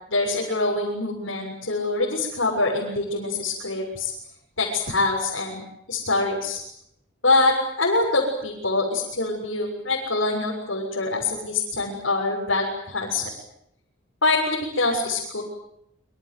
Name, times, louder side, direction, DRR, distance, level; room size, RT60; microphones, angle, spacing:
voice 1, 0.1-4.1 4.6-5.6 5.9-6.6 7.2-13.3 14.2-15.4, left 2 dB, 75° left, -3 dB, 7.0 m, -24 dB
27.5 x 26.0 x 8.0 m, 0.79 s
head